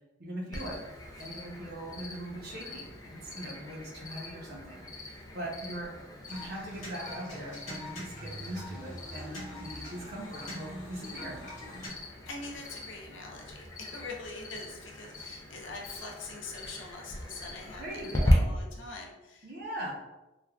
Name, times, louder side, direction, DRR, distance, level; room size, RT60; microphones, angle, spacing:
voice 1, 0.2-0.8 1.2-5.9 6.3-11.4 17.8-18.4 19.4-19.9, right 1 dB, 50° right, -2 dB, 0.7 m, -40 dB
Cricket, 0.5-18.3, left 1 dB, 15° left, 0.3 m, -40 dB
sound 1, 6.3-11.9, equal, 35° left, 1.1 m, -44 dB
voice 2, 12.0-19.5, left 3 dB, 70° left, 0 dB, 0.5 m, -44 dB
3.3 x 2.3 x 2.3 m, 1.0 s
head